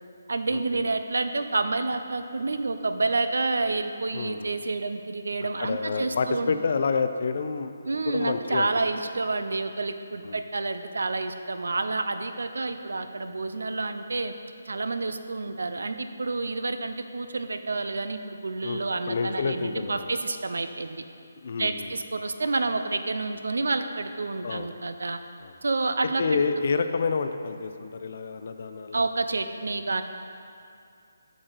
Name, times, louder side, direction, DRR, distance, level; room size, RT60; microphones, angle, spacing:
voice 1, 0.3-6.5 7.8-14.3 14.7-21.0 21.6-25.2 25.6-26.4 28.9-30.0, right 3 dB, 85° right, 9 dB, 0.5 m, -29 dB
voice 2, 4.1-4.5 5.6-7.7 8.1-8.7 10.2-10.4 18.6-20.1 21.4-21.9 24.4-24.7 25.4-25.5 26.2-29.1, left 5 dB, 45° left, 8 dB, 0.4 m, -29 dB
7.8 x 6.3 x 3.9 m, 2.5 s
hypercardioid pair, 170°, 0 cm